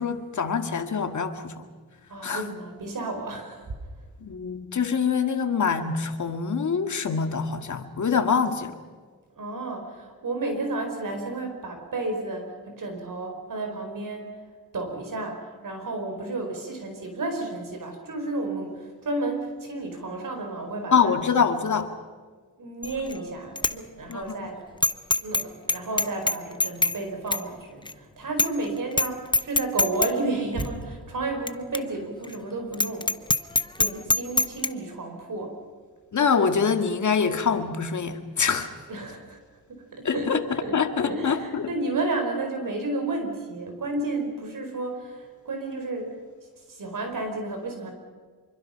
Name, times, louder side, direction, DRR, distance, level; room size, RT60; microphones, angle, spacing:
voice 1, 0.0-1.7 2.2-2.5 4.2-8.8 20.9-21.9 24.1-24.5 36.1-38.7 40.0-40.4 40.7-41.7, left 6 dB, 50° left, 7 dB, 2.0 m, -25 dB
voice 2, 2.1-3.7 9.4-14.3 14.7-21.2 22.6-24.6 25.2-33.1 33.8-35.6 38.9-39.4 39.7-40.3 40.6-46.1 46.7-47.9, right 2 dB, 55° right, 4 dB, 4.7 m, -32 dB
Bicycle bell, 22.8-23.2 23.6-23.7 24.1-24.2 24.8-25.4 25.7-27.0 27.3-27.4 27.9-28.0 28.4-28.6 28.9-29.1 29.3-30.1 30.6-30.7 31.5-31.6 31.7-31.8 32.2-32.3 32.7-34.7, left 2 dB, 10° left, 0.7 m, -23 dB
25.5 x 23.5 x 5.8 m, 1.5 s
cardioid pair, 105°, 38 cm